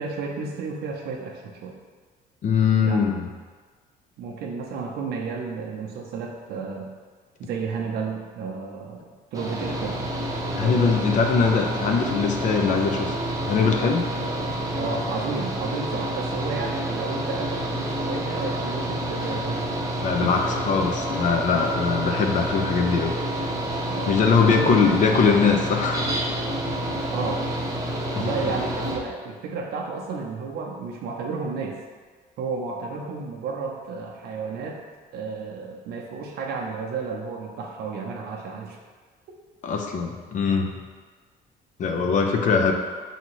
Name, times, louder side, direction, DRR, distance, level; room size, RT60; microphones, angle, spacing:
voice 1, 0.0-1.8 2.8-3.0 4.2-6.9 7.4-10.0 10.6-11.0 14.7-19.7 20.2-20.3 23.9-24.2 24.4-25.4 27.1-27.5 28.2-31.8 32.4-34.8 35.1-38.8, right 4 dB, 70° right, 0 dB, 0.6 m, -32 dB
voice 2, 2.4-3.2 10.5-13.1 13.5-14.0 19.2-19.3 20.0-23.1 24.1-26.0 28.1-28.3 39.6-40.7 41.8-42.7, left 5 dB, 50° left, 3 dB, 0.5 m, -21 dB
Mechanical fan, 9.3-29.0, right 1 dB, 20° right, 0.7 m, -28 dB
5.4 x 2.8 x 3.0 m, 1.5 s
cardioid pair, 110°, 17 cm